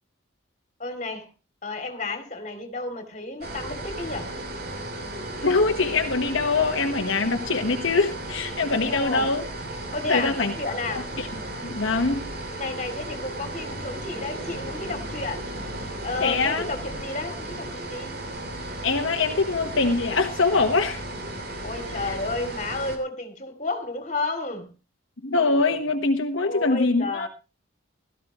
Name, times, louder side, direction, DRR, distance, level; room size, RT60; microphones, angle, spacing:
voice 1, 0.8-1.3 1.6-4.3 8.9-9.3 9.9-11.1 12.6-15.4 16.0-18.1 21.6-24.7 26.4-27.3, left 3 dB, 35° left, 2.7 m, -32 dB
sound 1, 3.4-23.0, right 1 dB, 50° right, 3.0 m, -35 dB
voice 2, 5.4-9.4 10.1-10.5 10.9-12.2 16.2-16.7 18.8-21.0 21.9-22.2 25.2-27.3, left 3 dB, 70° left, 1.2 m, -23 dB
17.0 x 13.5 x 3.0 m
head